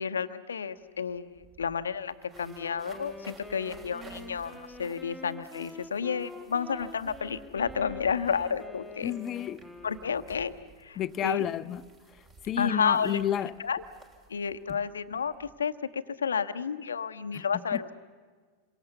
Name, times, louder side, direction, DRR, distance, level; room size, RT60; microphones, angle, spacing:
voice 1, 0.0-9.1 9.8-10.5 10.8-11.5 12.6-13.2 13.6-13.8 14.3-17.9, left 6 dB, 70° left, 0.9 m, -31 dB
sound 1, 0.8-0.9 1.1-15.5, right 3 dB, 25° right, 3.5 m, -55 dB
Wind instrument woodwind instrument, 2.3-10.6, left 2 dB, ahead, 1.7 m, -46 dB
voice 2, 9.0-9.6 11.0-11.8 12.4-13.5 14.7-14.8 17.3-17.4 17.7-17.8, left 11 dB, 30° left, 0.6 m, -30 dB
27.5 x 24.0 x 7.0 m
figure-of-eight pair, 90°, 0 cm